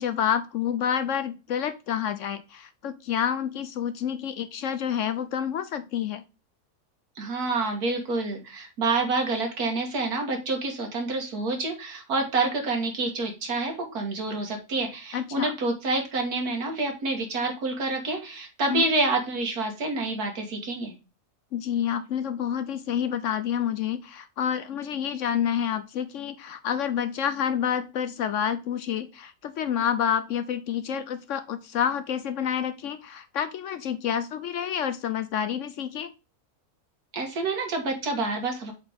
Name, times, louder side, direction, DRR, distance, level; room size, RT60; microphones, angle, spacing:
voice 1, 0.0-6.2 15.1-15.5 18.7-18.9 21.5-36.1, left 9 dB, 65° left, 12 dB, 0.9 m, -28 dB
voice 2, 7.2-20.9 37.1-38.7, right 3 dB, 85° right, 3 dB, 2.2 m, -28 dB
7.6 x 4.3 x 3.5 m, 0.29 s
omnidirectional pair, 1.6 m